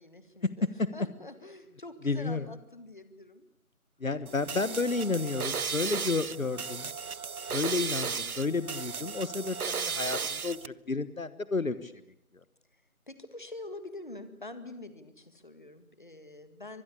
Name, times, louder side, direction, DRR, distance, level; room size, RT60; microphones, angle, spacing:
voice 1, 0.0-3.5 4.3-5.2 12.7-12.8 13.1-16.8, left 2 dB, 35° left, 11 dB, 1.9 m, -46 dB
voice 2, 2.0-2.4 4.0-6.9 7.5-11.9, left 3 dB, 65° left, 15 dB, 1.4 m, -31 dB
sound 1, 4.3-10.7, right 5 dB, 75° right, 0.9 m, -35 dB
24.0 x 21.0 x 8.5 m, 0.75 s
figure-of-eight pair, 175°, 43 cm